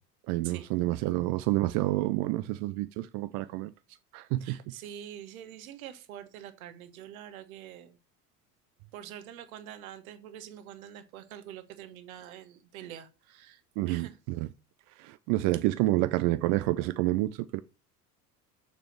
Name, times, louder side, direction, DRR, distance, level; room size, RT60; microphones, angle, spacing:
voice 1, 0.3-3.7 4.1-4.6 13.8-14.5 15.0-17.6, right 17 dB, 40° right, 0.5 m, -28 dB
voice 2, 4.4-8.0 8.9-13.6 13.8-14.1, right 10 dB, 60° right, 1.4 m, -45 dB
6.9 x 6.7 x 6.4 m
figure-of-eight pair, 70°, 47 cm